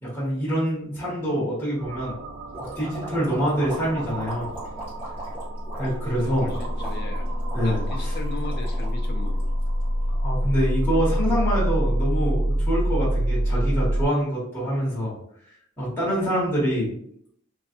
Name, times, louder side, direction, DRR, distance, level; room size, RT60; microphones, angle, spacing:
voice 1, 0.0-2.1 2.7-4.6 5.8-6.5 7.5-8.1 10.2-15.2 15.8-17.0, equal, 10° left, -8 dB, 1.2 m, -25 dB
sound 1, 1.8-14.1, equal, 70° right, 0.4 m, -26 dB
sound 2, 2.5-9.8, right 1 dB, 10° right, 1.2 m, -39 dB
voice 2, 6.0-7.3 7.6-9.4, left 2 dB, 50° left, 3 dB, 0.4 m, -37 dB
2.5 x 2.4 x 2.5 m, 0.70 s
head